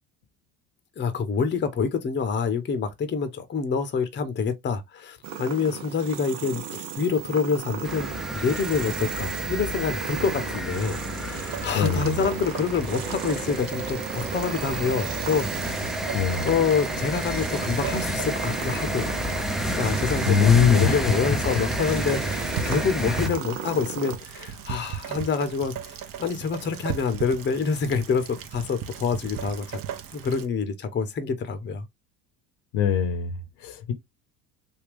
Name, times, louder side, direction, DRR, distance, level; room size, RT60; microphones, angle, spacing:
voice 1, 1.0-8.1 8.3-15.9 16.4-19.1 19.8-29.8 30.1-31.8, left 5 dB, 25° left, 0.7 m, -27 dB
sound 1, 5.2-24.2, right 8 dB, 70° right, 1.0 m, -35 dB
sound 2, 7.8-23.3, equal, ahead, 0.4 m, -30 dB
Rain, 11.3-30.5, right 9 dB, 45° right, 0.8 m, -39 dB
voice 2, 11.7-12.2 16.1-16.5 20.2-21.1 32.7-33.9, left 7 dB, 55° left, 0.9 m, -22 dB
3.5 x 2.3 x 3.4 m
hypercardioid pair, 65°, 49 cm